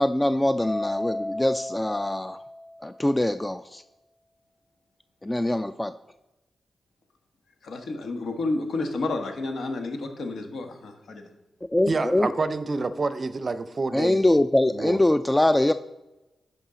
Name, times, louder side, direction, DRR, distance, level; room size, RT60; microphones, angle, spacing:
voice 1, 0.0-2.4 2.8-3.8 5.2-5.9 11.7-12.3 13.9-15.7, left 1 dB, 15° left, 12 dB, 0.3 m, -23 dB
Mallet percussion, 0.6-3.0, left 1 dB, 5° right, 2.4 m, -34 dB
voice 2, 7.6-11.3, left 2 dB, 70° left, 5 dB, 1.3 m, -30 dB
voice 3, 11.8-14.3 14.7-15.0, right 3 dB, 45° right, 13 dB, 0.6 m, -28 dB
10.5 x 5.5 x 3.8 m, 1.0 s
cardioid pair, 60°, 0 cm